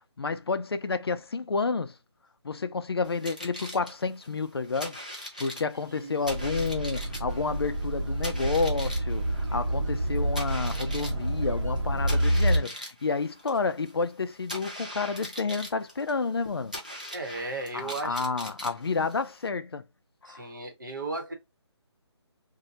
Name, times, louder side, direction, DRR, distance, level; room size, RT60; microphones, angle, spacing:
voice 1, 0.2-1.9 2.4-5.0 5.4-16.7 17.7-19.8 20.2-20.4, left 4 dB, 60° left, 0.4 m, -30 dB
sound 1, 3.0-19.5, equal, 15° right, 0.3 m, -42 dB
sound 2, 6.3-12.6, right 1 dB, 90° right, 0.9 m, -28 dB
voice 2, 17.1-18.2 20.3-21.3, right 2 dB, 45° right, 0.9 m, -35 dB
2.7 x 2.1 x 4.0 m
hypercardioid pair, 180°, 15 cm